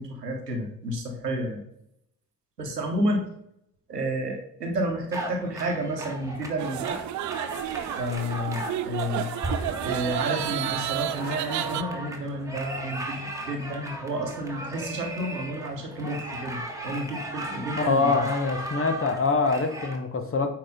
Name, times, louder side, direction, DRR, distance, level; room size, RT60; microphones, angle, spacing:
voice 1, 0.0-1.6 2.6-3.2 3.9-7.0 8.0-9.3 9.8-18.3, equal, 85° right, 2 dB, 1.2 m, -31 dB
sound 1, 5.1-20.0, right 1 dB, 5° right, 1.6 m, -36 dB
sound 2, 6.6-11.8, right 12 dB, 40° right, 0.5 m, -31 dB
voice 2, 17.8-20.5, left 4 dB, 30° left, 7 dB, 1.2 m, -24 dB
8.8 x 4.8 x 3.9 m, 0.74 s
figure-of-eight pair, 50°, 47 cm